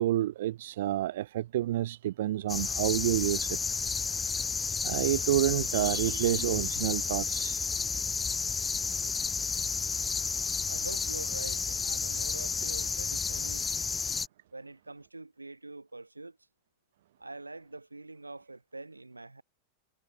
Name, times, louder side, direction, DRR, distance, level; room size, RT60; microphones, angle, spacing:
voice 1, 0.0-3.6 4.8-7.7, right 14 dB, 55° right, 0.6 m, -29 dB
sound 1, 2.5-14.3, left 5 dB, 15° left, 1.6 m, -31 dB
voice 2, 10.7-13.7 14.5-16.4 17.2-19.4, right 2 dB, 80° right, 2.7 m, -44 dB
figure-of-eight pair, 90°, 0 cm